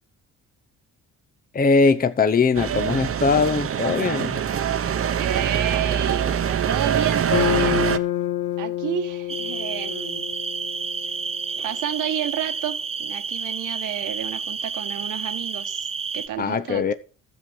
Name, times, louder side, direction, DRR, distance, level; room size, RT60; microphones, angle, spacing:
voice 1, 1.5-4.4 16.4-16.9, left 4 dB, 30° left, 0.9 m, -20 dB
sound 1, 2.5-8.0, right 8 dB, 45° right, 0.9 m, -24 dB
voice 2, 5.2-8.0 8.6-10.3 11.6-16.9, right 11 dB, 80° right, 1.4 m, -30 dB
sound 2, 7.3-11.6, left 13 dB, 70° left, 1.1 m, -28 dB
sound 3, 9.3-16.3, right 5 dB, 20° right, 0.5 m, -30 dB
12.0 x 7.6 x 6.3 m
cardioid pair, 90°, 31 cm